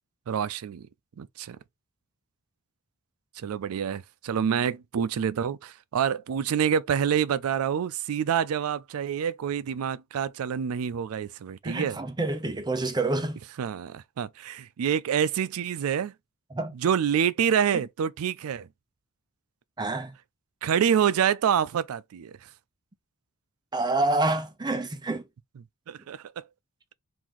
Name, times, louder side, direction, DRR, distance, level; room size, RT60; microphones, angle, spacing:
voice 1, 0.3-0.9 1.2-1.6 3.4-12.0 13.6-16.1 16.7-18.7 20.6-22.3 25.6-26.4, right 8 dB, 85° right, 0.4 m, -27 dB
voice 2, 11.6-13.4 16.5-16.7 19.8-20.1 23.7-25.2, right 2 dB, 20° right, 0.5 m, -27 dB
3.8 x 2.6 x 3.0 m
head